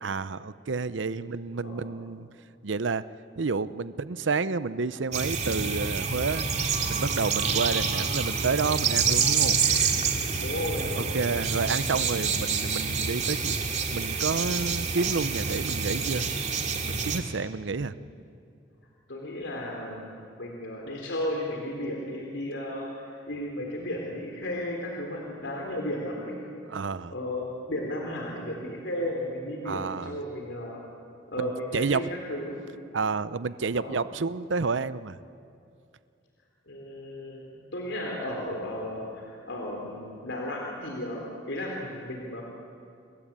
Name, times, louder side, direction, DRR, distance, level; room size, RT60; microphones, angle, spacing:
voice 1, 0.0-2.3 2.6-3.0 3.4-6.5 6.9-9.6 11.0-16.3 16.8-17.9 26.7-27.1 29.6-30.2 31.7-32.1 32.9-35.2, right 4 dB, 80° right, 15 dB, 0.7 m, -30 dB
sound 1, 5.1-17.2, right 5 dB, 40° right, 2.5 m, -27 dB
voice 2, 10.4-11.2 17.8-18.1 19.1-26.6 27.1-30.8 31.3-32.6 33.7-34.0 36.7-42.4, left 1 dB, 80° left, 0 dB, 3.7 m, -34 dB
29.0 x 21.5 x 8.8 m, 2.5 s
head